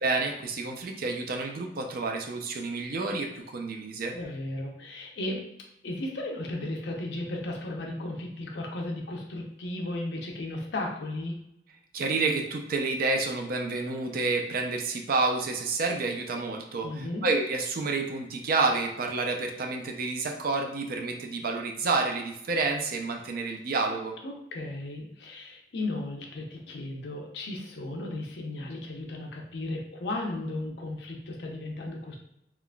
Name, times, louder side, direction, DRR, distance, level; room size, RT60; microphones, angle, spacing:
voice 1, 0.0-4.1 11.9-24.1, right 3 dB, 50° right, 3 dB, 0.4 m, -29 dB
voice 2, 4.1-5.4 5.8-11.4 16.8-17.3 24.2-32.2, left 2 dB, 65° left, 1 dB, 0.6 m, -35 dB
3.7 x 2.4 x 2.2 m, 0.81 s
head